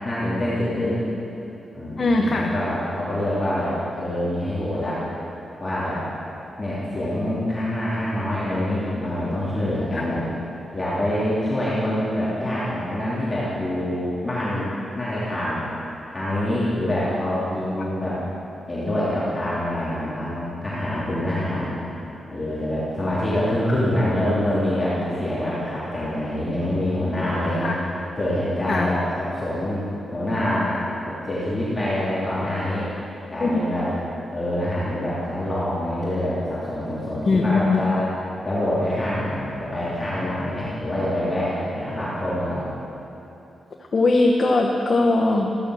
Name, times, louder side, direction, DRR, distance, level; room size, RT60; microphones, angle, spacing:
voice 1, 0.0-1.0 1.7-5.0 5.6-6.0 6.6-10.2 10.7-14.7 14.9-15.7 16.1-18.2 18.7-21.7 22.3-27.7 28.2-32.9 33.3-33.9 34.3-38.0 38.4-42.6, left 1 dB, 15° left, -10 dB, 3.0 m, -25 dB
voice 2, 2.0-2.5 9.9-10.0 27.6-27.8 28.7-28.9 33.4-33.6 37.3-37.8 43.9-45.5, left 3 dB, 35° left, 0 dB, 1.1 m, -20 dB
15.5 x 14.5 x 6.4 m, 3.0 s
wide cardioid pair, 175°, 0 cm